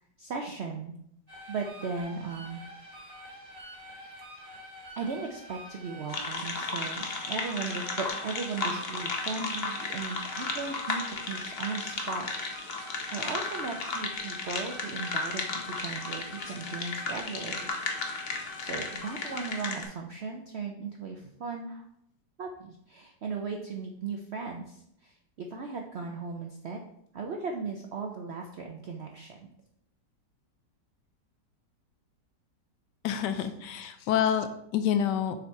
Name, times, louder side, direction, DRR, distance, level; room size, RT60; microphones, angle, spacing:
voice 1, 0.2-0.9 1.5-2.6 5.0-12.3 13.1-17.7 18.6-21.9 22.4-26.8 27.1-29.4 33.4-33.5, right 4 dB, 70° right, 2 dB, 0.6 m, -37 dB
sound 1, 1.3-19.5, left 1 dB, 25° right, 2.0 m, -46 dB
sound 2, 6.1-19.8, left 3 dB, 45° left, 0.9 m, -34 dB
voice 2, 33.0-35.4, left 9 dB, 80° left, 9 dB, 1.2 m, -28 dB
6.8 x 3.9 x 4.5 m, 0.74 s
omnidirectional pair, 1.8 m